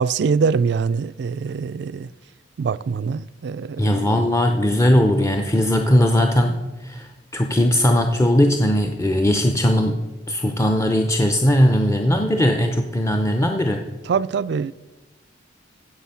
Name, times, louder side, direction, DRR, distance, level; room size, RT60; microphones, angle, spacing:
voice 1, 0.0-2.1 2.6-4.3 14.0-14.7, right 5 dB, 60° right, 0.3 m, -23 dB
voice 2, 3.8-13.8, equal, 15° left, 0.5 m, -19 dB
15.5 x 6.7 x 5.7 m
head